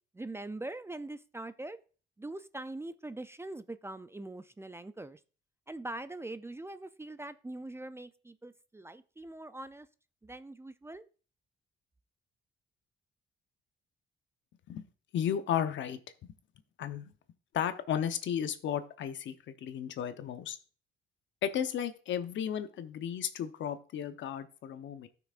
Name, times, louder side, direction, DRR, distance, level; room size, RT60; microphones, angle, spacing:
voice 1, 0.1-1.8 2.2-5.2 5.7-9.9 10.2-11.0, right 2 dB, 10° right, 13 dB, 0.4 m, -42 dB
voice 2, 15.1-16.0 16.8-17.1 17.5-19.3 19.6-20.6 21.4-25.1, left 9 dB, 70° left, 10 dB, 0.8 m, -34 dB
13.5 x 6.0 x 2.5 m, 0.38 s
cardioid pair, 90°, 20 cm